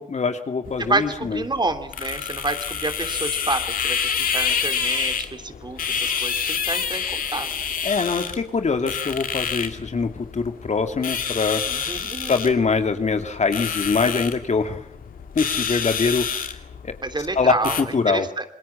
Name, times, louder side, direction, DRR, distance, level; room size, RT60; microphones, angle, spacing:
voice 1, 0.0-1.4 7.8-11.9 12.2-14.8 15.3-16.6 16.8-17.0 17.4-18.3, left 4 dB, 55° left, 7 dB, 2.7 m, -23 dB
sound 1, 0.6-17.8, left 7 dB, 90° left, 2.3 m, -28 dB
voice 2, 0.8-7.5 11.7-12.3 17.0-18.4, right 2 dB, 30° right, 8 dB, 3.1 m, -28 dB
27.5 x 21.0 x 7.1 m, 0.71 s
cardioid pair, 60°, 14 cm